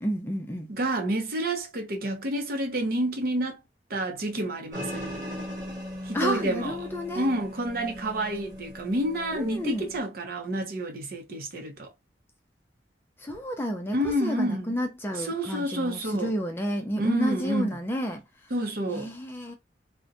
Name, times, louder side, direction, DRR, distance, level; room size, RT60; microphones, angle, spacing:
voice 1, 0.0-0.7 6.1-7.3 9.3-9.9 13.2-18.5 18.9-19.5, equal, 10° left, 0.4 m, -31 dB
voice 2, 0.7-3.6 3.9-5.1 6.0-6.8 7.1-11.9 13.9-14.7 15.2-16.3 17.0-17.7 18.5-19.1, right 1 dB, 55° right, 0.6 m, -29 dB
sound 1, 4.7-10.0, equal, 20° right, 1.2 m, -39 dB
2.6 x 2.1 x 2.4 m
head